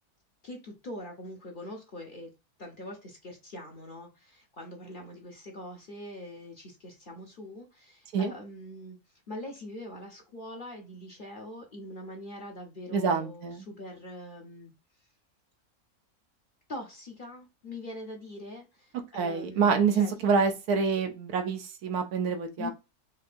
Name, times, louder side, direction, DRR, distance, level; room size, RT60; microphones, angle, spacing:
voice 1, 0.4-2.3 2.6-9.0 9.3-14.7 16.7-20.5 22.6-22.7, left 1 dB, 40° left, 0.9 m, -43 dB
voice 2, 12.9-13.6 19.1-22.7, right 5 dB, 80° right, 1.2 m, -26 dB
4.5 x 2.6 x 2.4 m
omnidirectional pair, 1.6 m